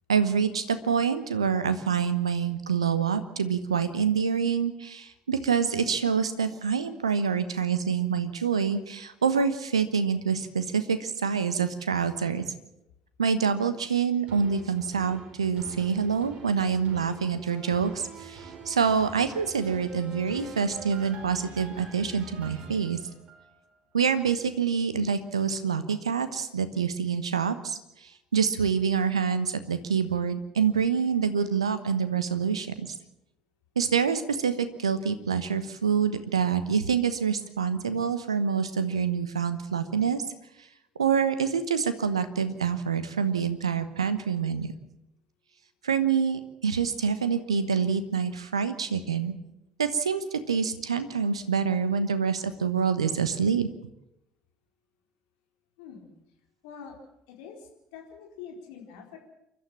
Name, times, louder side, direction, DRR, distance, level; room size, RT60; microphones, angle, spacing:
voice 1, 0.1-12.4 13.2-23.0 23.9-32.9 33.8-40.2 41.0-44.7 45.8-49.3 49.8-53.7, right 6 dB, 80° right, 12 dB, 1.1 m, -26 dB
sound 1, 14.3-23.7 24.1-24.2, right 3 dB, 45° right, 5.3 m, -45 dB
voice 2, 56.6-56.9 57.3-59.2, left 7 dB, 65° left, 1 dB, 4.2 m, -45 dB
28.0 x 12.5 x 7.5 m, 0.85 s
figure-of-eight pair, 55°, 3 cm